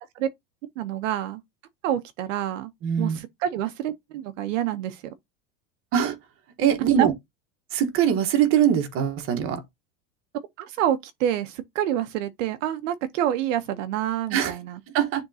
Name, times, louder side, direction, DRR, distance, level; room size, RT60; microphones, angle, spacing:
voice 1, 0.8-1.4 1.8-2.7 3.0-5.0 7.0-7.1 10.6-14.8, right 11 dB, 70° right, 0.9 m, -27 dB
voice 2, 2.8-3.2 5.9-6.2 6.6-7.1 7.7-9.6 14.3-14.5 14.9-15.2, right 9 dB, 35° right, 1.2 m, -22 dB
9.7 x 3.7 x 2.8 m
supercardioid pair, 170°, 40 cm